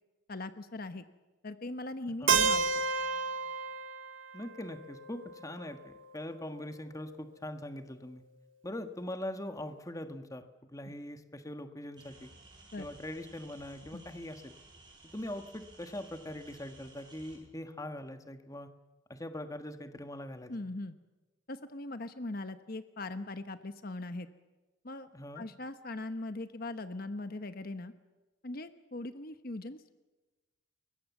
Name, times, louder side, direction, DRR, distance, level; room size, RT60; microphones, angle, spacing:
voice 1, 0.3-1.0 1.4-2.7 10.9-11.0 12.7-12.8 13.9-14.0 20.5-21.0 21.5-24.3 24.8-25.1 25.3-27.9 28.4-29.9, left 2 dB, 50° left, 10 dB, 1.1 m, -40 dB
Keyboard (musical), 2.3-6.2, right 5 dB, 85° right, 2.3 m, -32 dB
voice 2, 4.3-8.2 8.6-12.3 12.8-14.6 15.1-18.7 19.1-20.5 25.1-25.4, left 1 dB, 15° left, 8 dB, 1.5 m, -42 dB
sound 1, 12.0-17.4, right 2 dB, 25° right, 7.9 m, -56 dB
29.0 x 22.5 x 7.2 m, 1.1 s
head